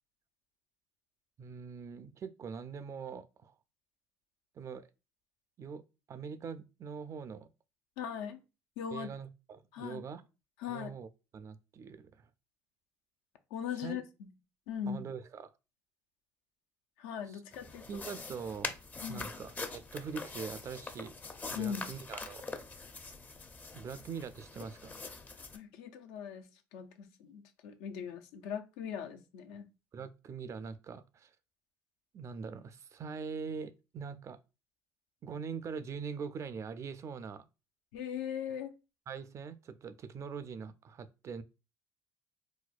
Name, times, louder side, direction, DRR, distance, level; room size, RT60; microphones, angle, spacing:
voice 1, 1.4-3.5 4.6-4.9 5.6-5.8 6.1-7.5 8.9-10.3 10.7-12.3 13.8-14.0 14.9-15.5 17.3-17.4 17.9-18.7 19.1-21.1 21.5-22.4 23.7-25.0 29.9-31.3 32.1-34.4 35.2-37.4 39.1-41.4, right 6 dB, 40° right, 0.3 m, -43 dB
voice 2, 8.0-8.4 8.8-9.1 9.7-10.0 10.6-10.9 13.5-14.3 14.7-15.0 17.0-17.8 19.0-19.3 21.5-21.9 25.5-26.5 26.7-29.6 37.9-38.7, left 8 dB, 85° left, 0.4 m, -39 dB
sound 1, 17.5-25.6, left 3 dB, 20° left, 0.4 m, -44 dB
4.1 x 2.2 x 2.3 m
supercardioid pair, 85°, 8 cm